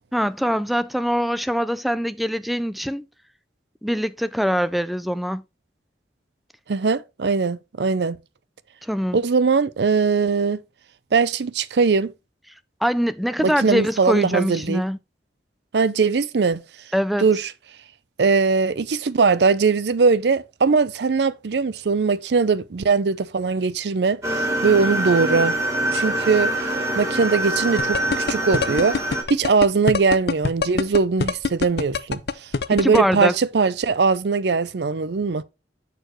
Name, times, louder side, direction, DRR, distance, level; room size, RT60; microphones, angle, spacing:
voice 1, 0.1-3.0 3.8-5.4 8.8-9.2 12.8-15.0 16.9-17.3 32.8-33.3, equal, ahead, 0.3 m, -23 dB
voice 2, 6.7-8.2 9.1-10.6 11.1-12.1 13.4-14.8 15.7-16.6 17.2-17.5 18.2-25.6 25.9-29.0 29.3-35.4, right 4 dB, 70° right, 0.5 m, -21 dB
sound 1, 24.2-29.2, right 1 dB, 15° right, 1.4 m, -24 dB
sound 2, 27.8-33.0, left 4 dB, 65° left, 0.5 m, -23 dB
6.7 x 6.4 x 3.0 m
head